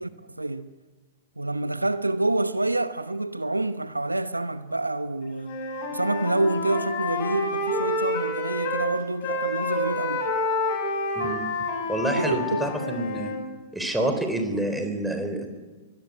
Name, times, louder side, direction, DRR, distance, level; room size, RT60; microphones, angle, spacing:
voice 1, 0.4-0.7 1.4-5.6 5.9-10.2 12.1-12.9 13.9-14.2, right 2 dB, 90° right, 0.9 m, -27 dB
Wind instrument woodwind instrument, 5.4-8.9 9.2-13.4, left 2 dB, 45° left, 7.1 m, -28 dB
voice 2, 11.9-13.3 13.7-15.5, right 1 dB, 5° right, 4.0 m, -28 dB
23.0 x 18.5 x 9.6 m
figure-of-eight pair, 105°, 0 cm